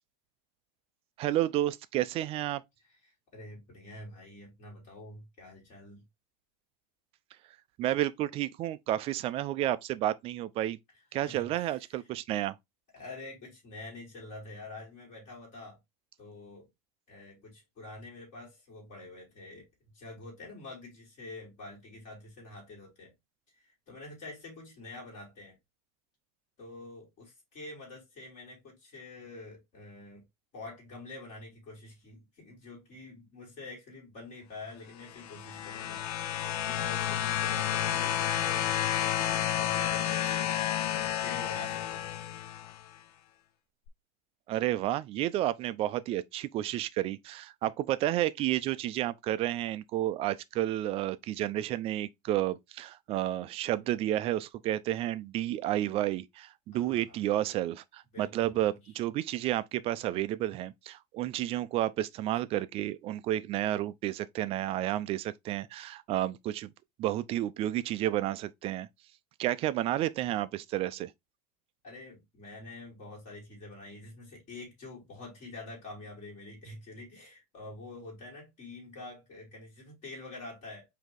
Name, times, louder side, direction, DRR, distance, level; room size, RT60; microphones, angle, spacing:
voice 1, 1.2-2.6 7.8-10.8 11.1-12.5 44.5-66.7 67.0-68.9 69.4-71.1, right 14 dB, 30° right, 0.3 m, -31 dB
voice 2, 2.9-6.0 11.2-11.7 12.9-15.8 16.2-16.7 17.1-23.1 23.5-25.6 26.6-30.2 30.5-42.1 56.7-57.2 58.1-58.9 71.8-80.8, left 2 dB, 35° left, 2.8 m, -47 dB
sound 1, 35.0-42.8 43.9-44.0, left 11 dB, 70° left, 0.5 m, -31 dB
5.0 x 2.8 x 3.7 m
supercardioid pair, 140°, 20 cm